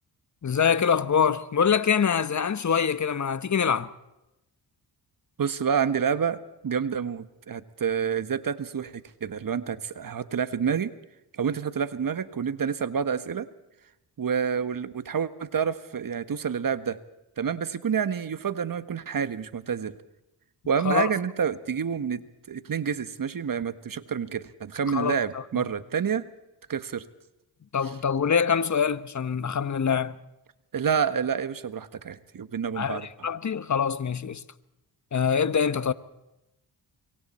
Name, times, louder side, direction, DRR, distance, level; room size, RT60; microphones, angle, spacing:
voice 1, 0.4-3.9 20.8-21.1 24.9-25.4 27.7-30.2 32.8-34.4 35.1-35.9, left 7 dB, 35° left, 1.3 m, -24 dB
voice 2, 5.4-8.9 9.2-10.9 11.3-13.5 14.2-17.0 17.4-20.0 20.7-22.2 22.5-26.2 26.7-27.0 30.7-33.1, right 7 dB, 45° right, 1.4 m, -28 dB
25.5 x 23.0 x 4.4 m
supercardioid pair, 55°, 47 cm